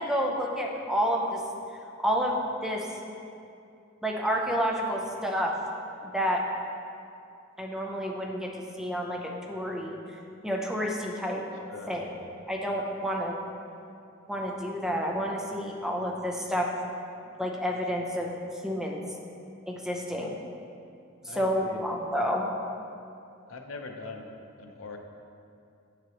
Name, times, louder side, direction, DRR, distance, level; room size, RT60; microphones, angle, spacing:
voice 1, 0.0-1.4 2.0-2.9 4.0-5.5 6.0-6.4 7.6-10.0 10.4-11.4 11.9-12.1 12.5-13.3 14.3-16.7 17.4-18.3 18.6-19.0 19.7-20.4 21.2-22.5, equal, 5° right, -1 dB, 0.6 m, -29 dB
voice 2, 11.7-12.1 12.4-12.5 21.3-21.8 23.5-24.3 24.6-25.0, left 3 dB, 80° left, 4 dB, 0.6 m, -42 dB
7.9 x 6.0 x 3.0 m, 2.6 s
head